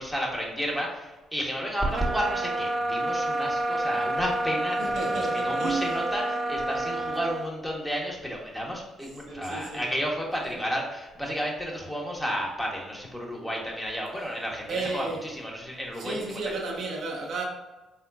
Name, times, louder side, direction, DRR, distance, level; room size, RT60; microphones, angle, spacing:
voice 1, 0.0-16.5, equal, 5° left, -2 dB, 1.4 m, -32 dB
sound 1, 1.9-7.5, right 1 dB, 45° right, 0.3 m, -29 dB
voice 2, 4.8-6.0 9.3-9.8 14.7-15.2 16.0-17.4, right 3 dB, 70° right, -2 dB, 1.1 m, -32 dB
4.3 x 3.7 x 2.6 m, 1.1 s
supercardioid pair, 60°, 0 cm